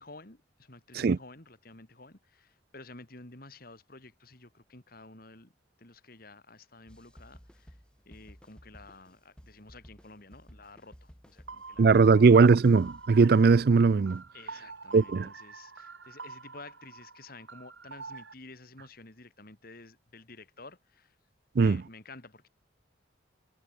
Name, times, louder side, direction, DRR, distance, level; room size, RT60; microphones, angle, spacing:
voice 1, 0.0-5.5 5.8-7.8 8.1-12.3 14.3-21.1 21.6-22.5, left 2 dB, 50° left, 2.6 m, -51 dB
sound 1, 6.9-14.2, equal, 5° left, 2.5 m, -56 dB
sound 2, 11.5-18.3, right 4 dB, 80° right, 3.9 m, -47 dB
voice 2, 11.8-14.2 14.9-15.3 21.6-21.8, right 4 dB, 50° right, 0.4 m, -20 dB
head